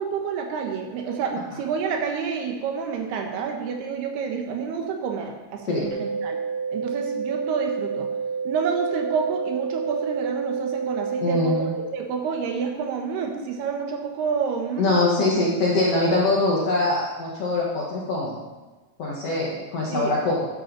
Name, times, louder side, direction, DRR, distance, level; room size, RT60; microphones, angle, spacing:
voice 1, 0.0-6.4 6.7-8.1 8.4-11.7 11.9-14.9 19.9-20.1, right 6 dB, 75° right, 3 dB, 3.3 m, -28 dB
sound 1, 5.8-11.8, right 5 dB, 15° left, 2.8 m, -29 dB
voice 2, 11.2-11.7 14.8-18.4 19.0-20.5, left 2 dB, 55° left, -4 dB, 1.9 m, -23 dB
12.5 x 10.5 x 4.0 m, 1.2 s
omnidirectional pair, 4.7 m